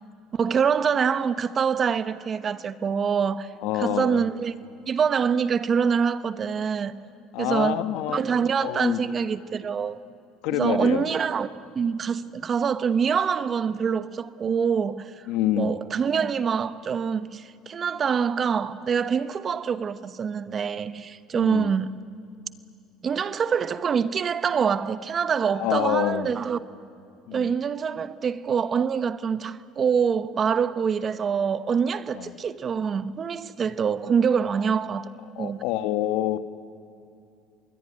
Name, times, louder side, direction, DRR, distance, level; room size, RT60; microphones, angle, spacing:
voice 1, 0.3-3.5 3.8-4.5 4.9-7.0 7.4-7.8 8.1-10.0 10.5-11.5 11.7-15.2 15.6-21.9 23.0-26.6 27.3-35.1 35.4-35.6, right 6 dB, 35° right, 1.0 m, -25 dB
voice 2, 3.6-4.2 7.3-9.0 10.4-11.1 15.3-15.8 21.3-21.7 25.5-26.3 27.3-27.5 32.1-32.3 35.3-36.4, left 13 dB, 75° left, 1.3 m, -27 dB
27.0 x 21.0 x 9.8 m
supercardioid pair, 105°, 0 cm